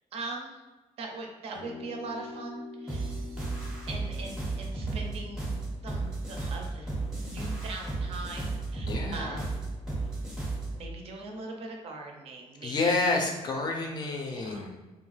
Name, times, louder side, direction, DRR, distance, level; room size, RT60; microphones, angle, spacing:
voice 1, 0.1-0.6 1.0-3.2 3.9-5.6 5.8-6.9 7.3-9.6 10.7-13.2 14.3-14.7, right 3 dB, 55° right, 1 dB, 0.5 m, -41 dB
sound 1, 1.6-6.1, left 3 dB, 90° left, 0.5 m, -45 dB
sound 2, 2.9-10.8, right 3 dB, 5° right, 0.6 m, -34 dB
voice 2, 8.8-9.4 12.6-14.8, left 3 dB, 35° left, 1 dB, 0.4 m, -29 dB
2.6 x 2.2 x 3.1 m, 1.2 s
cardioid pair, 170°, 12 cm